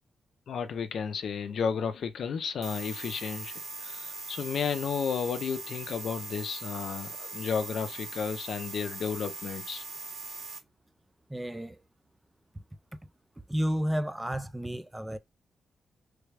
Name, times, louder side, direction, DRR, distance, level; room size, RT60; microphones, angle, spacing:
voice 1, 0.5-3.5 3.8-9.8, left 6 dB, 65° left, 0.5 m, -32 dB
sound 1, 2.6-10.6, right 3 dB, 60° right, 2.0 m, -41 dB
voice 2, 11.3-11.8 12.5-12.6 13.5-15.2, equal, 10° right, 0.4 m, -31 dB
3.3 x 2.3 x 3.2 m
cardioid pair, 100°, 0 cm